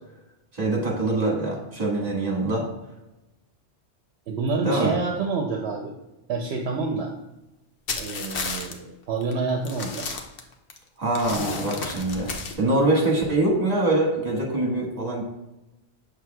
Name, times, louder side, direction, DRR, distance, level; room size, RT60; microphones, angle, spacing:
voice 1, 0.5-2.6 4.6-4.9 11.0-15.2, right 2 dB, 35° right, -2 dB, 1.6 m, -24 dB
voice 2, 4.3-5.9 6.3-7.1 8.0-10.1, right 4 dB, 70° right, 2 dB, 0.8 m, -27 dB
sound 1, 7.9-8.7 9.2-9.3 9.6-10.8 11.1-12.5, left 4 dB, 60° left, 0.9 m, -32 dB
6.7 x 6.1 x 2.3 m, 0.98 s
omnidirectional pair, 1.2 m